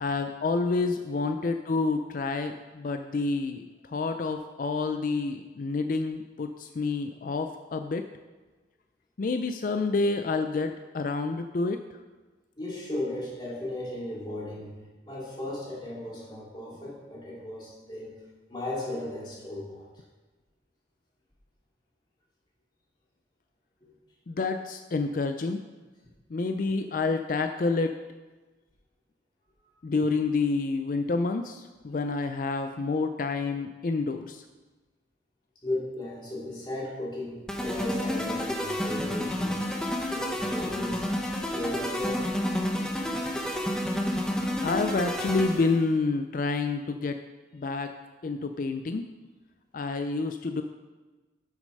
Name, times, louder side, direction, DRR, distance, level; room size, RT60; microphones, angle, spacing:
voice 1, 0.0-8.0 9.2-11.8 24.3-25.6 26.3-27.9 29.8-34.4 44.6-47.2 47.5-47.9 48.2-49.1 49.7-50.6, left 3 dB, 50° left, 7 dB, 0.4 m, -28 dB
voice 2, 12.6-14.8 15.1-18.2 18.5-19.9 23.8-23.9 35.6-39.6 40.1-41.1 41.5-42.3, left 1 dB, 25° left, -5 dB, 2.4 m, -35 dB
sound 1, 37.5-45.8, equal, 5° left, 0.8 m, -30 dB
8.5 x 6.5 x 5.4 m, 1.2 s
head